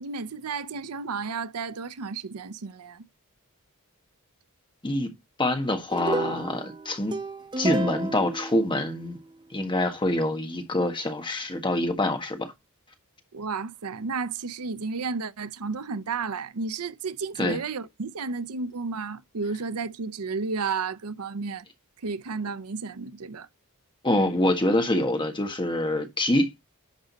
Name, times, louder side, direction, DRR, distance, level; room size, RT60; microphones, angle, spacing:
voice 1, 0.0-3.0 13.3-21.7 22.0-23.5, right 4 dB, 75° right, 0.7 m, -32 dB
voice 2, 5.4-7.1 7.6-9.2 9.5-12.5 17.4-17.6 24.0-26.7, left 1 dB, 20° left, 1.5 m, -25 dB
sound 1, 5.9-9.3, right 2 dB, 20° right, 0.6 m, -32 dB
11.0 x 5.0 x 4.1 m
head